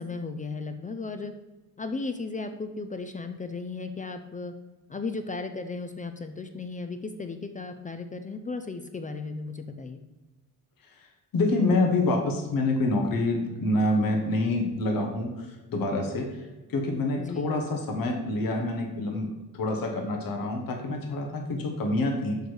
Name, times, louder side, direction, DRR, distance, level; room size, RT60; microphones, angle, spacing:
voice 1, 0.0-1.3 1.8-4.5 4.9-10.0 17.2-17.5, left 3 dB, 20° left, 8 dB, 0.4 m, -35 dB
voice 2, 11.3-16.4 16.7-19.3 19.5-22.4, left 2 dB, 65° left, 2 dB, 1.3 m, -27 dB
6.7 x 4.7 x 4.7 m, 1.1 s
cardioid pair, 120°, 36 cm